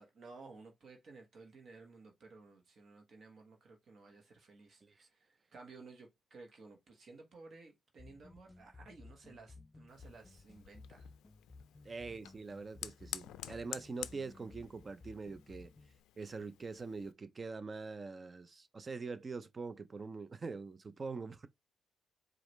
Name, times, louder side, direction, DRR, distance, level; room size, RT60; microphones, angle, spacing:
voice 1, 0.0-5.2 5.5-11.1, right 3 dB, 55° right, 1.2 m, -56 dB
sound 1, 8.0-16.0, left 3 dB, 25° left, 0.4 m, -57 dB
Fire, 9.9-17.1, left 13 dB, 90° left, 0.4 m, -50 dB
voice 2, 11.8-15.7 16.2-21.5, right 4 dB, 30° right, 0.5 m, -44 dB
4.8 x 2.4 x 3.2 m
cardioid pair, 90°, 0 cm